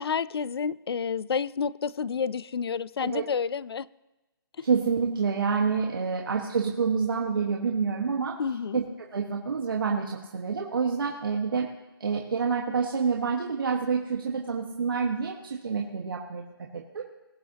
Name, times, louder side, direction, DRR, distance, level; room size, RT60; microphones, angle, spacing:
voice 1, 0.0-3.9 8.4-8.8, left 6 dB, 75° left, 0.5 m, -29 dB
voice 2, 4.6-8.4 8.7-8.8 9.1-11.7 12.0-17.0, right 5 dB, 60° right, 1.5 m, -28 dB
20.5 x 9.3 x 2.9 m
hypercardioid pair, 175°, 13 cm